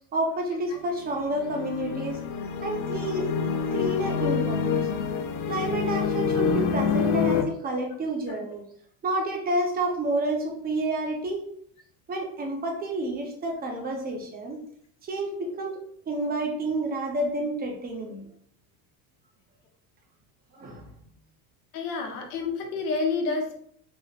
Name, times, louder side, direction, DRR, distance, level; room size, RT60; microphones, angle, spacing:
voice 1, 0.1-2.2 2.6-3.3 3.7-4.8 5.5-8.6 9.0-11.4 12.1-14.6 15.0-18.3 20.5-20.9, right 1 dB, 20° right, 1 dB, 0.7 m, -29 dB
sound 1, 0.9-7.4, left 6 dB, 50° left, 0.5 m, -27 dB
voice 2, 21.7-23.5, left 4 dB, 80° left, 1 dB, 1.0 m, -29 dB
3.0 x 3.0 x 2.4 m, 0.65 s
supercardioid pair, 120°, 44 cm